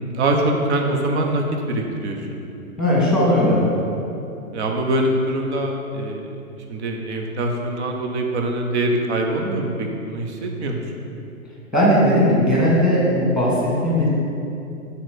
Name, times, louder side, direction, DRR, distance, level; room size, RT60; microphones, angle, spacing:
voice 1, 0.0-2.4 4.5-6.3 6.7-10.8, right 1 dB, 50° right, 2 dB, 1.1 m, -23 dB
voice 2, 2.8-3.7 11.7-14.1, equal, ahead, -5 dB, 1.7 m, -17 dB
6.2 x 4.1 x 6.3 m, 2.8 s
figure-of-eight pair, 120°, 43 cm